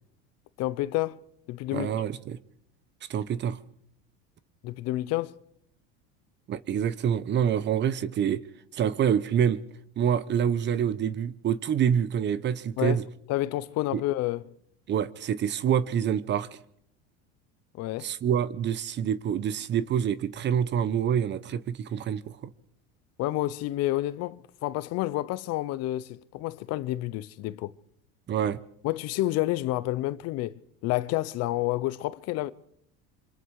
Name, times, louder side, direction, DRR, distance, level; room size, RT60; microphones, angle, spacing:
voice 1, 0.6-1.2 1.5-1.9 4.6-5.4 12.8-13.0 13.3-14.4 17.8-18.1 23.2-27.7 28.8-32.5, left 16 dB, 55° left, 0.9 m, -29 dB
voice 2, 1.7-2.4 3.1-3.6 6.5-8.4 8.7-9.6 10.0-13.0 13.9-14.0 14.9-16.5 18.0-22.4 28.3-28.6, right 8 dB, 35° right, 1.0 m, -26 dB
26.0 x 25.0 x 4.9 m
supercardioid pair, 125°, 31 cm